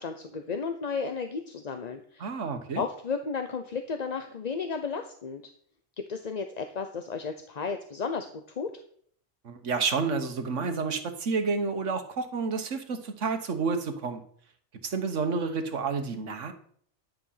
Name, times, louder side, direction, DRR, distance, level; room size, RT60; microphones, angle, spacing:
voice 1, 0.0-2.3 2.7-5.4 6.1-8.7, left 5 dB, 40° left, 7 dB, 0.8 m, -33 dB
voice 2, 2.2-2.8 9.4-14.2 14.8-16.5, right 4 dB, 85° right, 8 dB, 1.5 m, -30 dB
10.5 x 10.0 x 5.7 m, 0.62 s
omnidirectional pair, 1.2 m